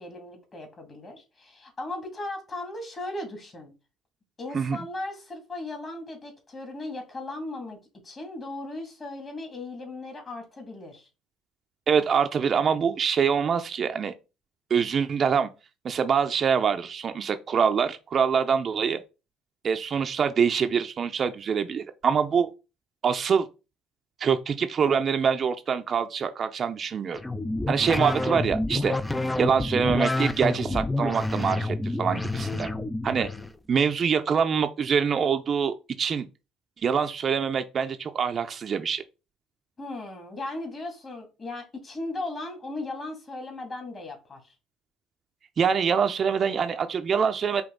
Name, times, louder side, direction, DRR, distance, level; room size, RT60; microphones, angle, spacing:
voice 1, 0.0-3.7 4.4-7.8 8.0-11.1 39.8-44.5, left 2 dB, 35° left, 2.3 m, -37 dB
voice 2, 4.5-4.8 11.9-14.1 14.7-15.5 15.8-19.0 19.6-22.5 23.0-23.5 24.2-27.2 27.7-29.0 29.4-32.7 33.0-33.3 33.7-36.3 36.8-39.0 45.6-47.6, right 6 dB, 45° right, 0.6 m, -25 dB
sound 1, 27.1-33.5, left 2 dB, 10° left, 0.4 m, -28 dB
5.2 x 2.6 x 3.9 m
supercardioid pair, 90°, 0 cm